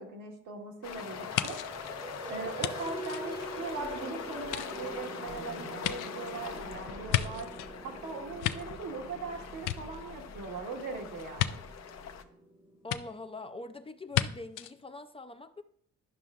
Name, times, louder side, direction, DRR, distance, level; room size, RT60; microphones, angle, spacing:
voice 1, 0.0-1.6 2.3-7.5 7.8-11.6, right 3 dB, 80° right, 1 dB, 1.6 m, -40 dB
sound 1, 0.8-12.2, left 7 dB, 60° left, 0.8 m, -43 dB
sound 2, 1.0-13.5, right 2 dB, 15° right, 0.9 m, -45 dB
sound 3, 1.3-3.9 4.4-7.7 8.2-9.2 9.5-10.4 11.4-11.5 12.9-13.0 14.1-14.3 14.6-14.7, left 13 dB, 90° left, 0.5 m, -34 dB
voice 2, 12.8-15.6, left 2 dB, 20° left, 9 dB, 0.4 m, -43 dB
11.0 x 5.7 x 2.5 m, 0.62 s
cardioid pair, 90°, 30 cm